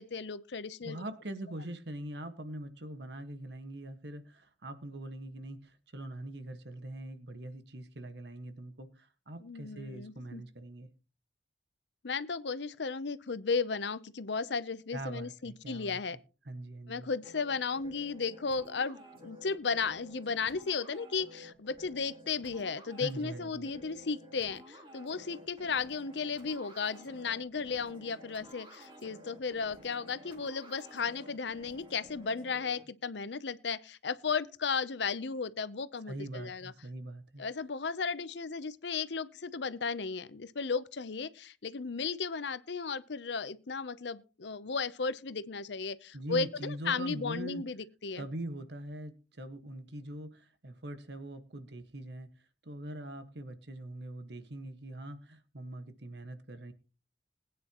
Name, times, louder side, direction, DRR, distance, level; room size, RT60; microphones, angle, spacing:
voice 1, 0.0-1.0 9.4-10.4 12.0-16.2 16.9-36.7 37.4-48.2, left 5 dB, 70° left, 0.7 m, -35 dB
voice 2, 0.8-10.9 14.9-16.0 16.4-17.1 23.0-23.7 36.1-37.4 46.1-47.6 48.2-52.3 52.6-56.7, right 1 dB, 65° right, 1.6 m, -42 dB
sound 1, 17.2-32.8, equal, 30° right, 3.1 m, -53 dB
21.0 x 9.4 x 3.0 m
head